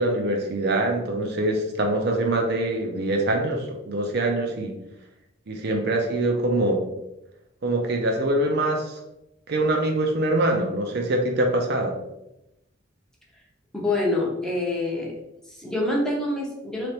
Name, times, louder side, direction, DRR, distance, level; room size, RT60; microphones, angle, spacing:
voice 1, 0.0-4.8 5.5-6.8 7.6-9.0 9.5-11.9, right 1 dB, 55° right, 2 dB, 0.5 m, -24 dB
voice 2, 13.7-15.1 15.5-16.9, left 2 dB, 5° left, -3 dB, 0.6 m, -26 dB
3.3 x 2.9 x 2.8 m, 0.88 s
head